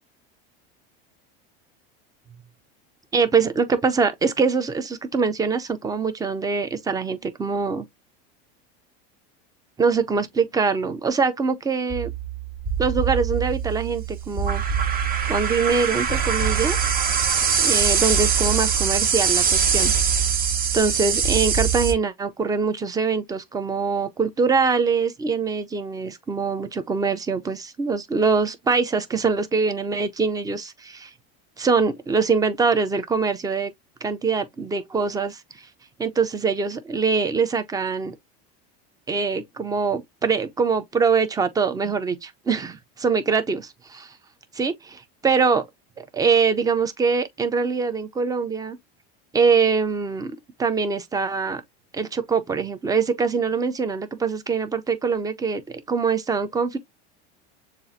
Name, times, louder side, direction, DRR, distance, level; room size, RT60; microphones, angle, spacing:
voice 1, 3.1-7.9 9.8-12.1 12.8-14.6 15.3-16.9 17.6-20.1 20.7-31.1 31.6-33.7 34.0-35.7 36.0-38.2 39.1-44.1 44.5-45.6 46.0-48.8 49.3-50.3 50.6-51.6 51.9-56.8, right 5 dB, 10° right, 0.5 m, -23 dB
sound 1, 11.9-21.9, right 6 dB, 30° right, 0.9 m, -22 dB
6.7 x 2.5 x 2.6 m
supercardioid pair, 120°, 31 cm